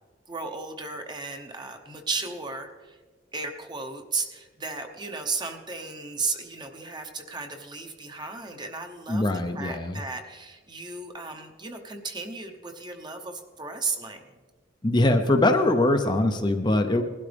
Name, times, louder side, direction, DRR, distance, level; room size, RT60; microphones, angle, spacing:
voice 1, 0.3-3.0 3.3-14.3, right 4 dB, 25° right, 5 dB, 1.0 m, -35 dB
voice 2, 9.1-10.0 14.8-17.0, left 1 dB, 25° left, 5 dB, 0.6 m, -22 dB
20.0 x 12.0 x 3.5 m, 1.4 s
head